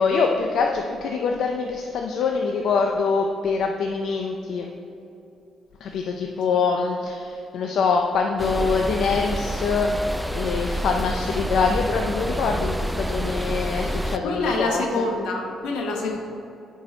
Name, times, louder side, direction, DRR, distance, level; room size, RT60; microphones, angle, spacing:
voice 1, 0.0-4.7 5.8-9.9 10.3-15.1 15.9-16.2, left 5 dB, 70° left, 2 dB, 0.5 m, -24 dB
sound 1, 8.4-14.2, equal, 5° right, 0.4 m, -28 dB
voice 2, 14.2-16.2, left 2 dB, 85° left, 1 dB, 1.2 m, -26 dB
10.5 x 4.7 x 4.4 m, 2.9 s
cardioid pair, 90°, 0 cm